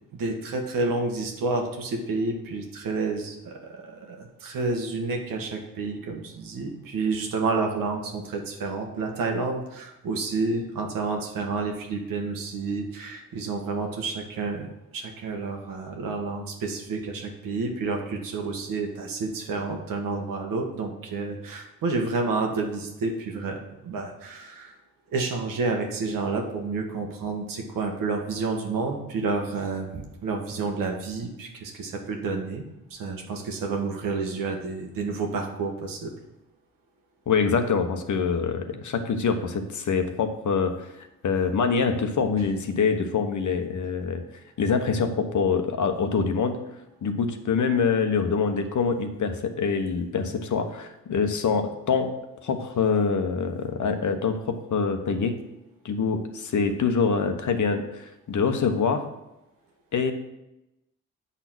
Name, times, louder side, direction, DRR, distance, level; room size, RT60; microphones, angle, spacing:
voice 1, 0.1-24.8 25.1-32.6 32.9-36.1, right 3 dB, 80° right, 2 dB, 1.5 m, -30 dB
voice 2, 37.3-40.9 41.2-44.2 44.6-46.6 47.0-52.1 52.4-55.3 55.8-59.0 59.9-60.1, left 5 dB, 60° left, 7 dB, 1.1 m, -25 dB
7.9 x 4.2 x 6.1 m, 0.92 s
supercardioid pair, 55°, 33 cm